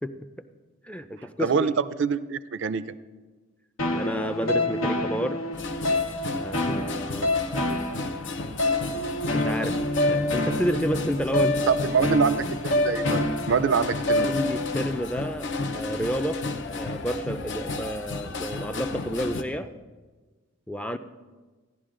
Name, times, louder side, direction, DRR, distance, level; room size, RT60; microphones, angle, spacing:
voice 1, 0.9-1.7 3.9-5.4 6.4-7.3 9.3-9.7 10.1-11.6 14.2-19.7 20.7-21.0, equal, 5° left, 9 dB, 0.4 m, -30 dB
voice 2, 1.4-2.9 11.7-12.4 12.6-14.3, right 6 dB, 65° right, 15 dB, 0.4 m, -25 dB
sound 1, 3.8-14.8, left 1 dB, 85° left, 1.4 m, -27 dB
sound 2, 5.5-19.4, left 3 dB, 60° left, 0.7 m, -33 dB
16.0 x 11.0 x 3.8 m, 1.3 s
head